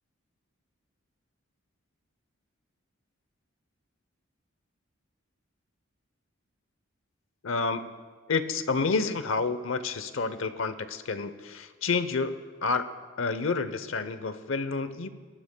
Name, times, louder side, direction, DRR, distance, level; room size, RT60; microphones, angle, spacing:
voice 1, 7.4-8.0 8.3-12.4 12.6-12.9 13.2-15.1, left 4 dB, 70° left, 11 dB, 0.8 m, -29 dB
22.0 x 19.0 x 2.3 m, 1.5 s
head